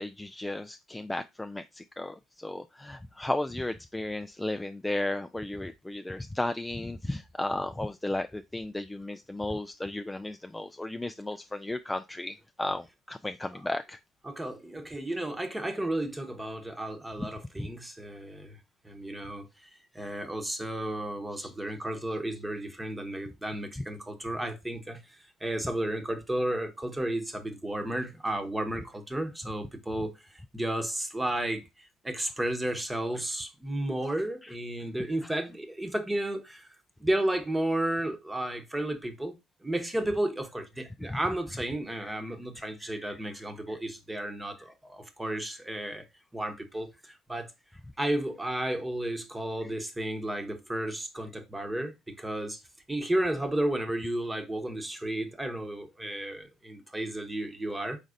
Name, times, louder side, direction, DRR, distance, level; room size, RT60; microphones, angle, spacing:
voice 1, 0.0-14.0 17.6-17.7 21.4-21.5 34.4-34.5 35.0-35.1 41.0-41.2 42.6-43.1 43.7-43.8, left 1 dB, 10° left, 0.3 m, -34 dB
voice 2, 14.2-18.6 18.8-19.7 19.9-30.1 30.5-36.7 37.0-39.4 39.6-46.0 46.3-47.5 48.0-52.6 52.9-58.0, right 1 dB, 10° right, 1.0 m, -33 dB
5.0 x 4.0 x 2.5 m
hypercardioid pair, 70°, 0 cm